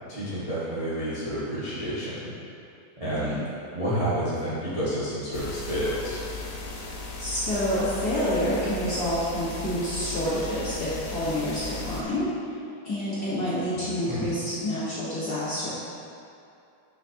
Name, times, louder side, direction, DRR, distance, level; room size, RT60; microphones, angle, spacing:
voice 1, 0.1-2.3 3.0-3.4 3.7-6.2 13.7-14.3, equal, 40° right, -12 dB, 0.4 m, -30 dB
voice 2, 3.0-3.4 7.2-12.3 12.8-15.7, equal, 50° left, -11 dB, 1.3 m, -28 dB
sound 1, 5.3-12.0, left 3 dB, 70° left, 1.7 m, -36 dB
7.1 x 5.8 x 2.9 m, 2.6 s
omnidirectional pair, 3.4 m